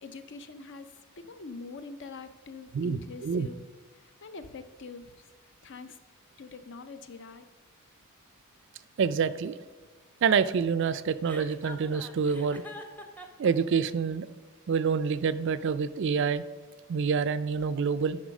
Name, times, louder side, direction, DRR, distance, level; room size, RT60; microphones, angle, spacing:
voice 1, 0.0-0.9 1.2-3.6 3.9-5.2 5.6-6.0 6.4-7.5, left 4 dB, 55° left, 10 dB, 0.6 m, -44 dB
voice 2, 2.7-3.5 9.0-9.6 10.2-12.6 13.4-14.3 14.7-16.4 16.9-18.2, right 6 dB, 55° right, 14 dB, 0.4 m, -27 dB
Chuckle chortle, 11.2-13.5, left 1 dB, 10° left, 0.7 m, -44 dB
11.0 x 4.2 x 5.3 m, 1.3 s
head